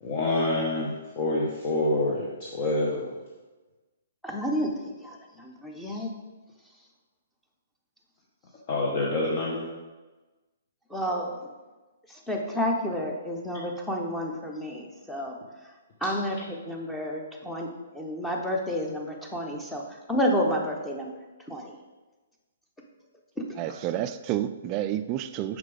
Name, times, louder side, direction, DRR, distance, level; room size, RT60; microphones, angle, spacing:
voice 1, 0.0-3.1 8.7-9.7 23.6-24.0, left 2 dB, 40° left, -4 dB, 1.0 m, -27 dB
voice 2, 4.2-4.7 5.0-6.1 10.9-11.3 12.1-15.4 16.0-17.7 17.9-19.8 20.1-21.1 21.5-21.8, equal, 5° left, 0 dB, 0.9 m, -30 dB
voice 3, 23.6-25.6, right 12 dB, 30° right, 11 dB, 0.3 m, -30 dB
6.4 x 5.2 x 3.5 m, 1.2 s
figure-of-eight pair, 130°, 0 cm